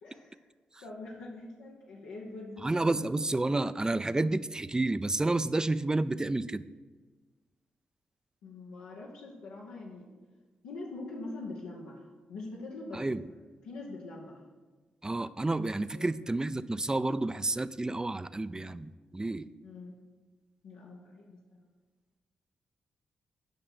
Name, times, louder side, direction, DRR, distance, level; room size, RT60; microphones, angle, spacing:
voice 1, 0.0-0.4 0.8-2.7 8.4-10.1 10.6-12.0 12.3-13.2 13.7-14.4 15.9-16.0 19.6-20.0 20.6-21.4, left 2 dB, 85° left, -4 dB, 1.1 m, -43 dB
voice 2, 2.6-6.7 12.9-13.3 15.0-19.5, right 2 dB, 20° right, 14 dB, 0.4 m, -30 dB
7.8 x 5.6 x 6.2 m, 1.3 s
supercardioid pair, 45°, 4 cm